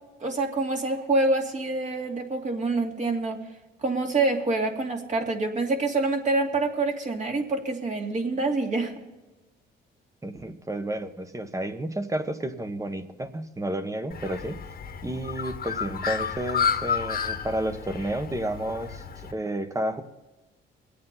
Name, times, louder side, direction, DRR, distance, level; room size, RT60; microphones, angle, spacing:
voice 1, 0.2-3.4 3.8-8.9, right 3 dB, 40° right, 2 dB, 2.5 m, -26 dB
voice 2, 10.2-14.5 15.0-20.0, right 1 dB, 15° right, 8 dB, 1.4 m, -31 dB
Bird, 14.1-19.3, left 6 dB, 50° left, 1.6 m, -31 dB
23.0 x 8.6 x 4.1 m, 1.1 s
cardioid pair, 90°, 20 cm